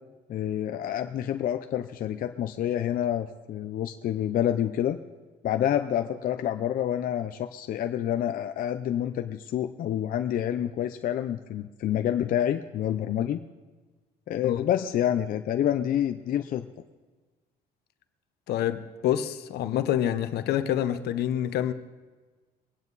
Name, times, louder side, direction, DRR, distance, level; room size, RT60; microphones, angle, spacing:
voice 1, 0.3-5.0 5.4-13.4 14.3-16.7, left 10 dB, 55° left, 0.6 m, -28 dB
voice 2, 18.5-21.7, left 11 dB, 70° left, 1.0 m, -27 dB
23.0 x 9.3 x 4.1 m
cardioid pair, 110°, 17 cm